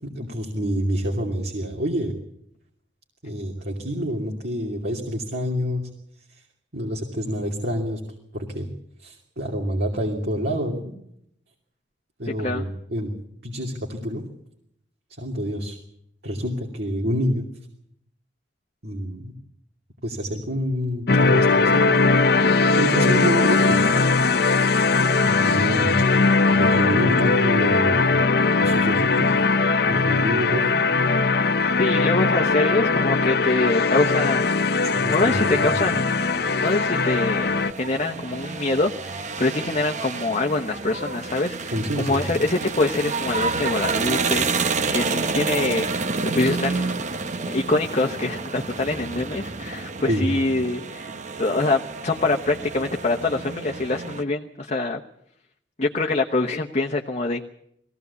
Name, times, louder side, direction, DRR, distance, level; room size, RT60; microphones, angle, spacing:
voice 1, 0.0-2.1 3.2-5.9 6.7-8.0 8.3-8.7 9.0-10.9 12.2-13.1 13.4-14.2 15.2-15.8 16.2-17.5 18.8-19.3 20.0-21.9 22.8-23.8 25.2-26.2 26.5-28.2 28.6-29.4 29.9-30.7 34.8-35.9 41.7-42.3 50.1-50.4, equal, 60° right, -1 dB, 2.7 m, -27 dB
sound 1, 21.1-37.7, left 4 dB, 60° left, 0.7 m, -20 dB
voice 2, 31.8-36.1 36.6-37.5 37.8-45.9 46.3-47.1 47.4-51.1 51.4-55.0 55.8-57.4, left 2 dB, 40° left, 2 dB, 1.0 m, -25 dB
sound 2, 35.9-54.2, right 4 dB, 40° right, 0.9 m, -29 dB
21.0 x 16.5 x 8.3 m, 0.74 s
head